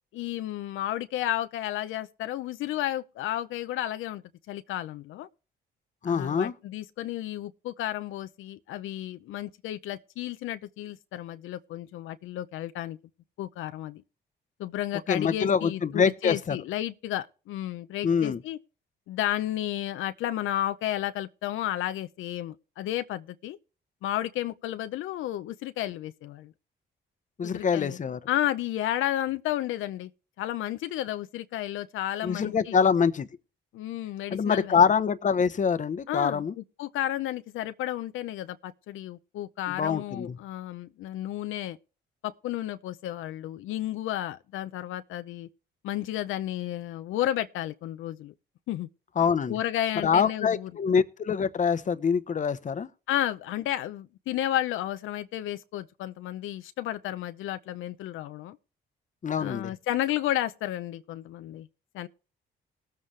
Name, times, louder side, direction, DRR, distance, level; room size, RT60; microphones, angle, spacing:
voice 1, 0.1-4.2 4.5-5.3 6.0-13.0 13.4-14.0 14.6-18.6 19.1-23.6 24.0-26.5 27.4-28.0 28.3-30.1 30.4-32.8 33.7-34.8 36.1-41.8 42.2-45.5 45.8-48.3 48.7-48.9 49.5-50.7 53.1-58.6 59.4-61.7 61.9-62.1, left 13 dB, 85° left, 0.6 m, -32 dB
voice 2, 6.0-6.5 15.1-16.6 18.0-18.4 27.4-28.2 32.2-33.3 34.3-36.5 39.7-40.4 49.2-49.6 50.0-52.9 59.2-59.7, left 6 dB, 40° left, 0.9 m, -25 dB
19.0 x 7.6 x 3.2 m
cardioid pair, 90°, 20 cm